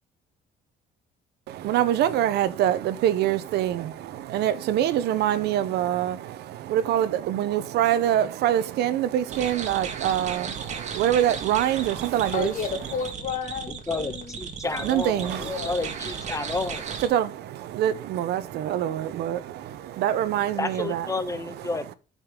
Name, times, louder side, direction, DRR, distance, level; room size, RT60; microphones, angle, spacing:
voice 1, 1.5-12.5 14.8-15.7 17.0-21.1, right 11 dB, 75° right, 0.9 m, -25 dB
sound 1, 9.3-17.1, right 6 dB, 45° right, 1.8 m, -36 dB
voice 2, 12.3-14.4 15.3-15.7, left 6 dB, 50° left, 2.0 m, -32 dB
voice 3, 13.9-16.9 20.6-21.9, left 3 dB, 20° left, 1.2 m, -31 dB
12.0 x 5.4 x 3.8 m
cardioid pair, 110°, 17 cm